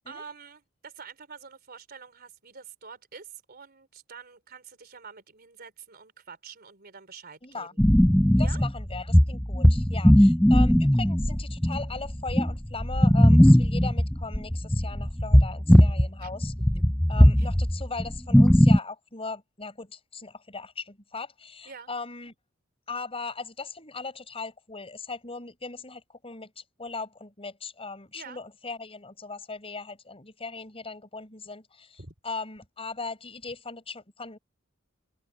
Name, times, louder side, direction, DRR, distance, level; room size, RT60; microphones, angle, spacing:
voice 1, 0.0-7.8 8.4-8.6 16.2-16.3 16.7-16.8 17.4-17.5 21.7-21.9 28.1-28.4 32.0-32.1, right 5 dB, 50° right, 3.8 m, -46 dB
voice 2, 7.4-7.7 8.4-16.5 17.1-22.3 22.9-34.4, left 4 dB, 30° left, 6.5 m, -38 dB
sound 1, 7.8-16.1 16.3-18.8, equal, 5° left, 0.5 m, -19 dB
head